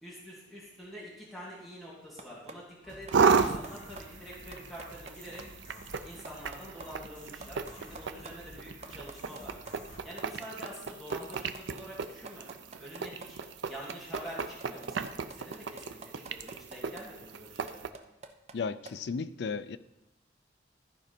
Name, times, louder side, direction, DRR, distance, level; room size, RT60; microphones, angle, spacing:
voice 1, 0.0-5.4 6.0-9.5 10.0-12.5 12.8-13.4 13.7-17.9, equal, ahead, -7 dB, 2.5 m, -46 dB
sound 1, 2.2-2.5 2.8-3.7 4.0-4.1 4.3-5.1 5.4-5.5 5.8-6.9 7.1-7.2 7.4-8.3 8.6-17.0 17.5-18.6 18.9-19.0, right 3 dB, 35° right, 0.6 m, -46 dB
sound 2, 2.8-10.1, left 1 dB, 45° left, 1.9 m, -52 dB
sound 3, 3.1-17.9, right 5 dB, 85° right, 0.5 m, -34 dB
voice 2, 18.5-19.8, left 5 dB, 65° left, 14 dB, 0.4 m, -34 dB
14.0 x 5.1 x 4.4 m, 0.93 s
head